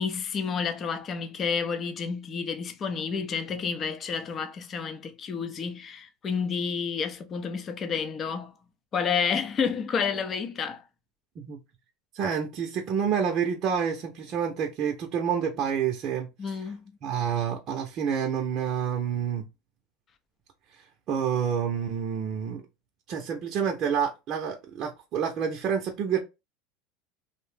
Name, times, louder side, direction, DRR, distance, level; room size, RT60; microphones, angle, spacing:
voice 1, 0.0-8.5 8.9-10.8 16.4-16.8, left 6 dB, 35° left, 0.5 m, -30 dB
voice 2, 12.1-16.6 17.0-19.5 20.7-22.6 23.1-26.2, right 7 dB, 50° right, 0.6 m, -28 dB
2.6 x 2.1 x 3.1 m
supercardioid pair, 110°, 0 cm